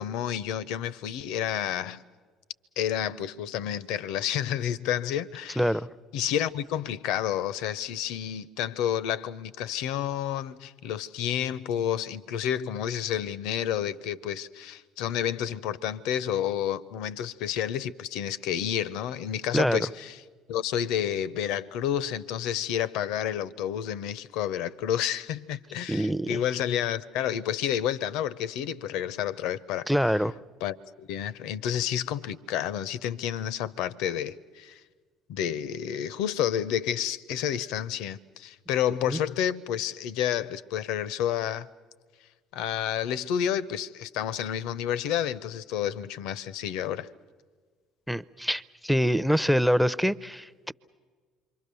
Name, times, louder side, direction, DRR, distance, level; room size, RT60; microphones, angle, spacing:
voice 1, 0.0-2.0 2.8-5.7 6.1-20.2 20.5-29.9 30.6-34.8 35.3-41.7 42.5-47.1, left 10 dB, 70° left, 0.6 m, -30 dB
voice 2, 5.6-5.9 19.5-19.8 25.9-26.4 29.9-30.3 39.1-39.2 48.1-50.7, equal, ahead, 0.6 m, -25 dB
28.0 x 24.0 x 6.9 m
hypercardioid pair, 60°, 0 cm